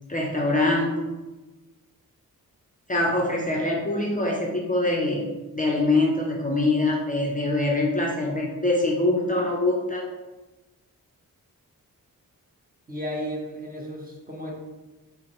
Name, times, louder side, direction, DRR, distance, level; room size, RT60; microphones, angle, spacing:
voice 1, 0.1-1.0 2.9-5.2 5.5-10.0, left 2 dB, 25° left, -2 dB, 0.5 m, -24 dB
voice 2, 12.9-14.5, equal, 25° right, -3 dB, 0.8 m, -33 dB
5.0 x 2.0 x 2.9 m, 1.1 s
wide cardioid pair, 100°, 36 cm